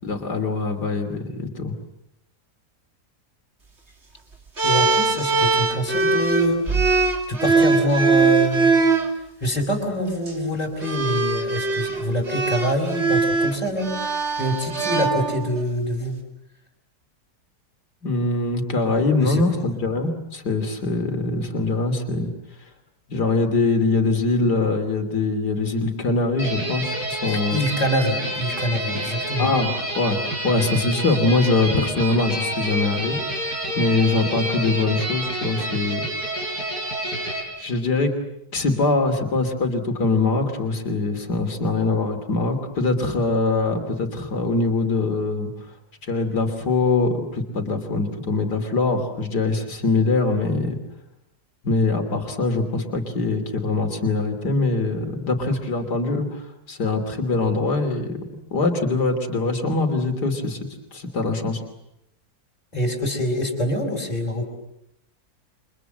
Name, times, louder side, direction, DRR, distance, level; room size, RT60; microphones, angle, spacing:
voice 1, 0.0-1.7 18.0-22.3 23.1-27.6 29.4-29.7 30.0-36.1 37.6-38.1 38.5-45.5 46.1-50.8 51.6-58.2 58.5-61.6, left 3 dB, 85° left, 5 dB, 3.6 m, -23 dB
voice 2, 4.6-6.6 6.9-8.7 9.4-16.2 19.2-19.7 27.2-29.5 62.7-64.5, equal, 25° left, 2 dB, 5.1 m, -25 dB
sound 1, 4.6-9.1 10.1-10.3 10.8-15.6, right 4 dB, 40° right, 3.0 m, -21 dB
sound 2, 26.4-37.4, right 1 dB, 70° right, 7.2 m, -28 dB
30.0 x 25.0 x 7.8 m, 0.80 s
omnidirectional pair, 1.7 m